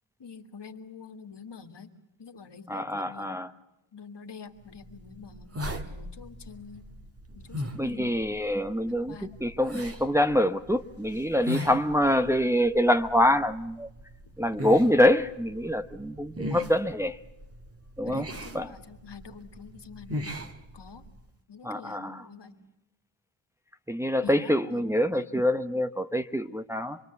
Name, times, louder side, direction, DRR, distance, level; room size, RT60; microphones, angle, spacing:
voice 1, 0.2-1.9 2.2-3.4 3.9-5.5 5.8-6.9 7.4-8.2 8.9-9.5 16.5-16.8 18.0-20.3 20.7-21.1 21.5-22.6 24.2-25.5, left 6 dB, 60° left, 7 dB, 2.2 m, -46 dB
voice 2, 2.7-3.5 7.8-9.2 9.4-13.9 14.4-17.1 18.0-18.3 18.5-18.7 21.6-22.2 23.9-27.0, equal, 5° right, 7 dB, 0.9 m, -25 dB
sound 1, 4.7-21.3, left 1 dB, 30° right, 2.1 m, -40 dB
26.5 x 22.5 x 8.1 m, 0.90 s
cardioid pair, 80°, 47 cm